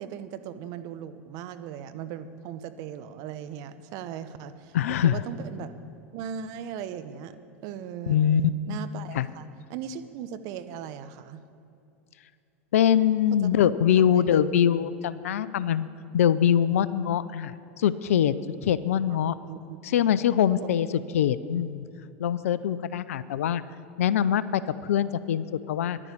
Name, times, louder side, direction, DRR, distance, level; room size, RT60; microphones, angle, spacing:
voice 1, 0.0-5.7 6.1-7.4 7.6-8.2 8.7-9.4 9.7-11.4 13.4-13.5 14.0-14.3 19.4-19.8 20.6-20.7, right 9 dB, 55° right, 11 dB, 0.9 m, -38 dB
voice 2, 4.7-5.2 8.1-8.4 8.7-8.8 9.1-9.3 12.7-15.9 16.1-18.3 18.6-19.4 19.8-20.9 21.1-21.8 22.2-23.6 24.0-26.0, left 9 dB, 80° left, 16 dB, 0.5 m, -23 dB
11.0 x 9.9 x 8.6 m, 2.6 s
hypercardioid pair, 95°, 8 cm